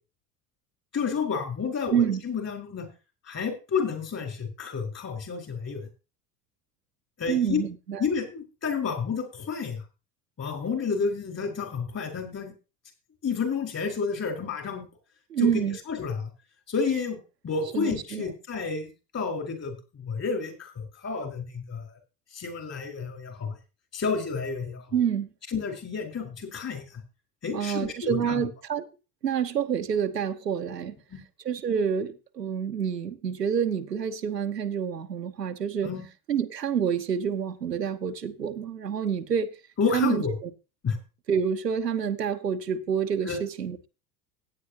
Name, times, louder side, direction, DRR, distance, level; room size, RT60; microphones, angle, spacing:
voice 1, 0.9-2.9 3.3-5.8 7.2-7.6 8.0-9.8 10.4-12.5 13.2-14.8 15.4-15.5 15.9-16.3 16.7-17.2 17.4-21.9 22.3-23.5 23.9-24.8 25.5-26.8 27.4-28.4 31.1-31.2 35.8-36.0 39.8-40.3 40.8-41.0 43.3-43.4, left 5 dB, 30° left, 4.8 m, -30 dB
voice 2, 1.9-2.2 7.3-8.0 15.3-15.8 17.7-18.3 24.9-25.3 27.5-28.9 29.2-31.0 31.4-35.9 36.3-39.5 39.9-40.2 41.3-43.9, right 7 dB, 85° right, 0.9 m, -27 dB
16.5 x 9.5 x 2.8 m
figure-of-eight pair, 75°, 48 cm